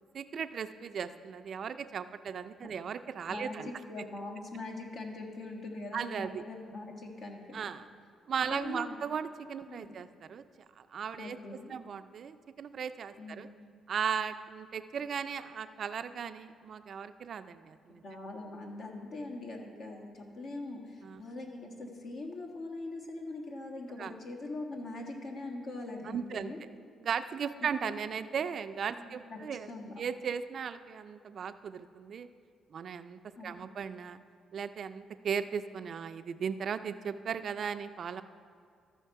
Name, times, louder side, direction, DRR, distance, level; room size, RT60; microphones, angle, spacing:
voice 1, 0.0-3.7 5.9-6.4 7.5-7.8 8.3-10.4 10.8-11.4 11.7-13.5 13.9-18.0 21.0-21.2 24.0-24.1 26.0-26.5 27.0-29.7 30.0-32.3 32.7-34.2 34.5-38.2, right 7 dB, 55° right, 10 dB, 0.4 m, -37 dB
voice 2, 3.3-7.7 8.5-8.9 9.7-10.0 11.2-11.8 13.2-13.5 18.0-26.6 27.8-28.0 28.9-29.4 29.7-29.9 33.4-33.7, left 2 dB, 60° left, 1 dB, 1.5 m, -42 dB
13.5 x 5.7 x 4.6 m, 2.2 s
cardioid pair, 90°, 0 cm